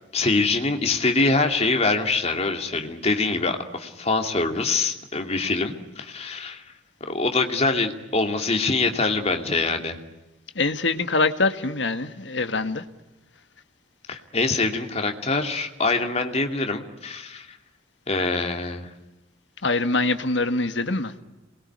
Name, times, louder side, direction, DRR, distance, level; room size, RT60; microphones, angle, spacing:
voice 1, 0.1-6.6 7.1-10.0 14.1-17.6 18.1-18.9, left 3 dB, 35° left, 4 dB, 2.6 m, -24 dB
voice 2, 10.5-12.8 19.6-21.1, left 3 dB, 70° left, 9 dB, 1.7 m, -24 dB
27.5 x 21.5 x 9.4 m, 1.0 s
head